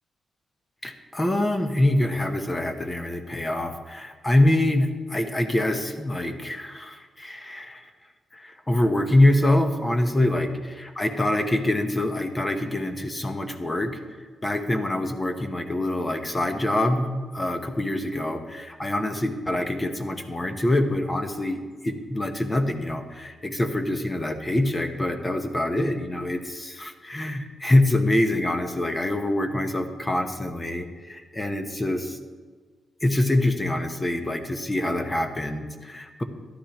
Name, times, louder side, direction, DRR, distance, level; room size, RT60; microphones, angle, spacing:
voice 1, 0.8-7.8 8.3-14.0 14.4-32.2 33.0-36.2, left 1 dB, 15° left, 6 dB, 1.0 m, -25 dB
13.5 x 11.5 x 3.0 m, 1.5 s
cardioid pair, 115°, 0 cm